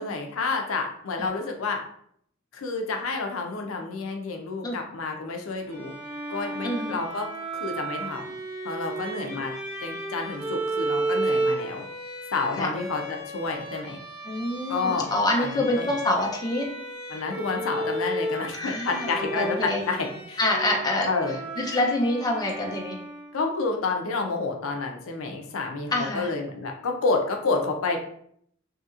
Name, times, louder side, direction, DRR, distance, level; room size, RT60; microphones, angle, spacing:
voice 1, 0.0-1.8 2.5-6.0 6.3-8.3 8.6-9.5 9.8-11.8 12.3-14.0 14.7-15.1 15.4-15.9 17.1-20.4 21.0-21.8 23.3-28.0, left 3 dB, 90° left, 3 dB, 0.5 m, -29 dB
Bowed string instrument, 5.7-23.5, right 2 dB, 25° right, 1.3 m, -33 dB
voice 2, 6.6-7.0 9.2-9.4 12.6-12.7 14.3-16.6 18.5-19.1 19.3-19.8 20.4-21.1 21.6-23.0 25.9-26.3, left 1 dB, 20° left, -1 dB, 0.5 m, -26 dB
2.8 x 2.7 x 2.4 m, 0.66 s
head